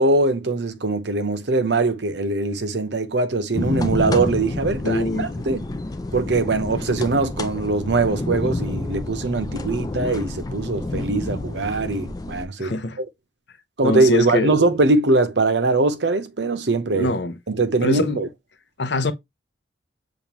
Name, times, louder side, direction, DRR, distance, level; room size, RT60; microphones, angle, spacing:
voice 1, 0.0-5.7 6.1-13.1 13.8-17.1 17.5-18.3, right 3 dB, 65° right, 0.8 m, -22 dB
sound 1, 3.5-12.4, left 2 dB, 20° left, 0.4 m, -29 dB
voice 2, 4.8-5.3 12.6-13.0 13.8-14.5 16.9-17.3 17.8-18.3 18.8-19.1, left 2 dB, 65° left, 0.7 m, -23 dB
7.0 x 2.5 x 2.9 m
head